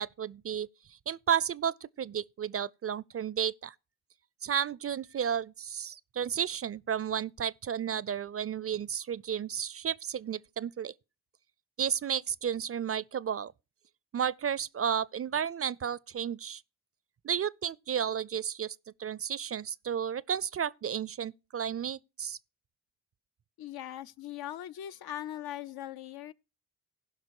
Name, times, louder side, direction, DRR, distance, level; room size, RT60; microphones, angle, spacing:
voice 1, 0.0-3.7 4.4-10.9 11.8-13.5 14.1-16.6 17.2-22.4, right 8 dB, 40° right, 0.4 m, -33 dB
voice 2, 23.6-26.3, left 12 dB, 70° left, 0.6 m, -40 dB
15.5 x 5.7 x 4.7 m
supercardioid pair, 45°, 39 cm